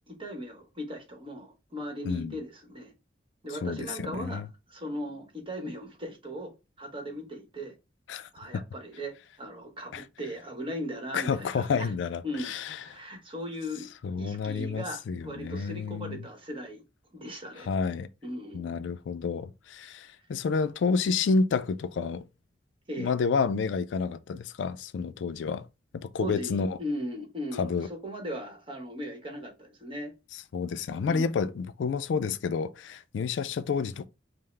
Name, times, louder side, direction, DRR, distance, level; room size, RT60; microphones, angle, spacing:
voice 1, 0.1-2.9 3.4-7.7 8.3-11.9 12.2-12.5 12.8-13.9 14.2-16.8 17.1-17.7 18.2-18.7 22.9-23.1 26.2-30.1 31.1-31.3, equal, 30° right, 1.1 m, -38 dB
voice 2, 2.1-2.4 3.6-4.5 8.1-8.6 9.9-10.0 11.1-13.0 14.0-16.2 17.6-18.1 18.5-22.2 23.0-25.7 25.9-26.8 27.6-27.9 30.5-34.1, left 5 dB, 70° left, 0.3 m, -30 dB
5.5 x 2.0 x 3.2 m
head